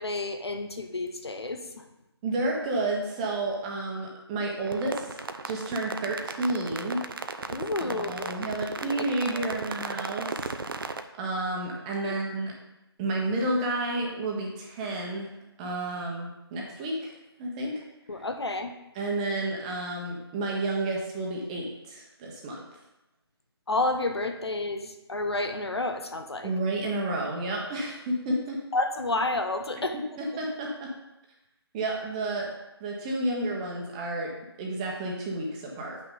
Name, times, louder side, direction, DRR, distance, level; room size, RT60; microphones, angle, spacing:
voice 1, 0.0-1.8 7.5-8.3 8.8-9.1 9.3-9.6 12.0-12.1 18.1-18.7 23.7-26.5 28.7-29.9, left 2 dB, 70° left, 8 dB, 1.0 m, -30 dB
voice 2, 2.2-7.4 7.8-10.3 11.2-12.5 13.0-15.3 15.6-17.1 17.4-17.8 18.9-22.6 26.4-28.6 30.2-30.9 31.7-32.5 32.8-36.0, right 2 dB, 15° right, -1 dB, 1.1 m, -31 dB
sound 1, 4.7-11.0, right 4 dB, 55° right, 0.6 m, -36 dB
9.0 x 5.8 x 3.9 m, 0.93 s
figure-of-eight pair, 155°, 14 cm